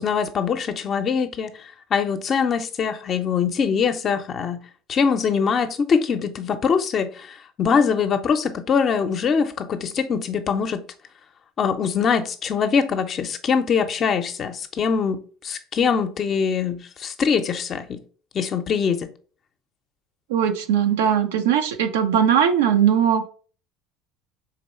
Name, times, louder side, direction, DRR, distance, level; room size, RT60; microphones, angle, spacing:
voice 1, 0.0-1.5 1.9-4.6 4.9-10.8 11.6-18.0 18.3-19.1, left 6 dB, 45° left, 0.6 m, -23 dB
voice 2, 20.3-23.3, right 8 dB, 85° right, 0.6 m, -19 dB
4.1 x 3.0 x 4.2 m
hypercardioid pair, 85°, 0 cm